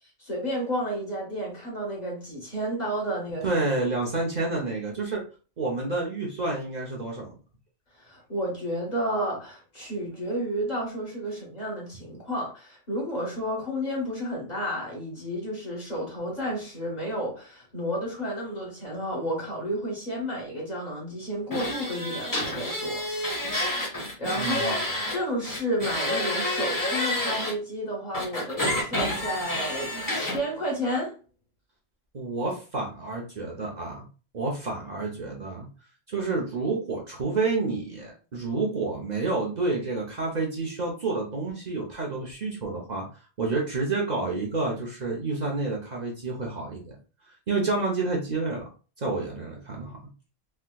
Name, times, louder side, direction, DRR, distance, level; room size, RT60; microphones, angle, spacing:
voice 1, 0.2-3.6 8.0-23.1 23.7-24.8 25.1-31.1, equal, 40° left, 1.4 m, -31 dB
voice 2, 3.4-5.2 5.6-7.4 24.4-24.7 32.1-34.1 34.3-35.7 36.1-43.1 43.4-47.0 47.3-48.6 49.0-50.0, right 3 dB, 45° right, 0.7 m, -29 dB
sound 1, 21.5-25.2 25.4-27.5 28.1-30.4, left 1 dB, 20° left, 0.8 m, -29 dB
3.3 x 2.9 x 2.2 m
omnidirectional pair, 1.1 m